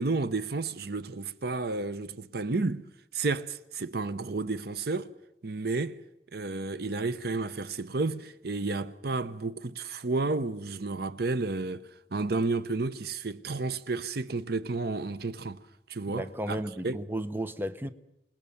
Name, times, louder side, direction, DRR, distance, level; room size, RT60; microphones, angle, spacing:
voice 1, 0.0-2.8 3.1-5.1 5.4-6.0 6.3-15.6 15.9-17.0, right 3 dB, 60° right, 0.8 m, -31 dB
voice 2, 16.1-17.9, right 1 dB, 10° right, 0.8 m, -34 dB
27.0 x 19.0 x 7.1 m
head